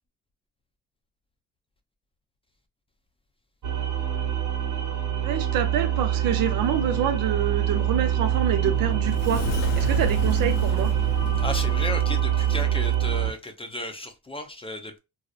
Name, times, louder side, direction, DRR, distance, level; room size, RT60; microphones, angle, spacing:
sound 1, 3.6-13.3, right 11 dB, 55° right, 1.1 m, -25 dB
voice 1, 5.2-9.5 9.8-10.9, right 9 dB, 70° right, 0.7 m, -27 dB
Sliding door, 7.9-12.7, left 6 dB, 60° left, 0.5 m, -33 dB
voice 2, 11.4-15.0, left 1 dB, 15° left, 0.6 m, -34 dB
2.8 x 2.0 x 2.4 m
supercardioid pair, 65°, 37 cm